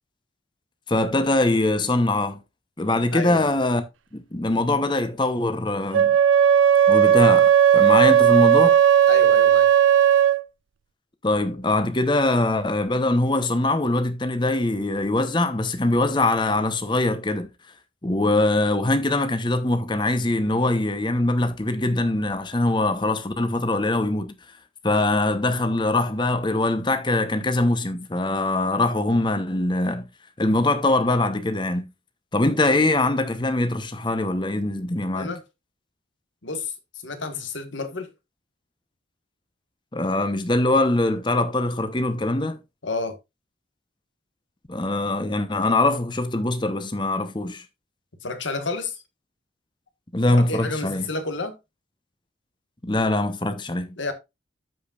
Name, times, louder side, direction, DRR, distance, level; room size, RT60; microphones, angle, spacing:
voice 1, 0.9-2.4 2.8-3.8 4.1-6.2 6.9-8.8 11.2-17.5 18.0-24.3 24.8-30.1 30.4-31.9 32.3-35.3 39.9-42.6 44.7-47.6 50.1-51.1 52.8-53.9, left 2 dB, 25° left, 0.9 m, -22 dB
voice 2, 3.1-3.5 9.1-9.7 35.1-35.4 36.4-38.1 42.8-43.2 48.2-49.0 50.3-51.6 54.0-54.1, left 3 dB, 85° left, 1.5 m, -30 dB
Wind instrument woodwind instrument, 5.9-10.4, right 9 dB, 90° right, 0.5 m, -16 dB
14.0 x 5.0 x 2.4 m
head